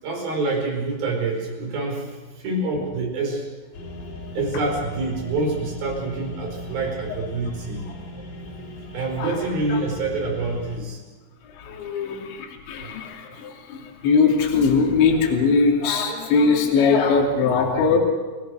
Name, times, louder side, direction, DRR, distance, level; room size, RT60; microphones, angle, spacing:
voice 1, 0.0-3.5 4.3-7.8 8.9-11.0, right 3 dB, 45° right, 2 dB, 6.2 m, -26 dB
sound 1, 3.7-10.8, left 1 dB, 45° left, 5.4 m, -37 dB
voice 2, 11.5-18.0, left 5 dB, 65° left, 1 dB, 4.9 m, -21 dB
30.0 x 20.0 x 6.4 m, 1.3 s
omnidirectional pair, 5.9 m